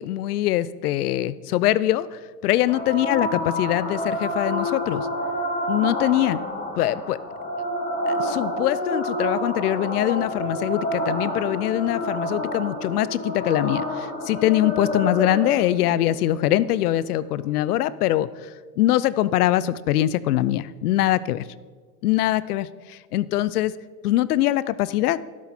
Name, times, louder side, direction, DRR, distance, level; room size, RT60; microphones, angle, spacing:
voice 1, 0.0-2.1 2.4-5.1 5.7-6.4 6.8-7.2 8.1-18.3 18.8-21.4 22.0-23.7 24.0-25.2, left 14 dB, 75° left, 18 dB, 0.6 m, -23 dB
sound 1, 2.7-17.7, equal, 20° left, 2.3 m, -29 dB
12.0 x 7.3 x 4.3 m, 1.5 s
hypercardioid pair, 100°, 46 cm